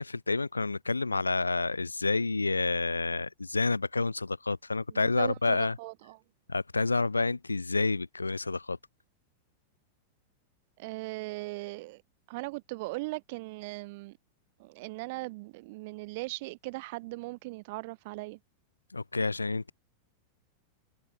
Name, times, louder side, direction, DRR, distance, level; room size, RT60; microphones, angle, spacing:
voice 1, 0.0-5.8 6.5-8.8 18.9-19.7, left 3 dB, 80° left, 0.3 m, -29 dB
voice 2, 4.9-6.2 10.8-12.0 12.3-14.2 14.6-18.4, right 24 dB, 50° right, 0.4 m, -39 dB
figure-of-eight pair, 90°, 0 cm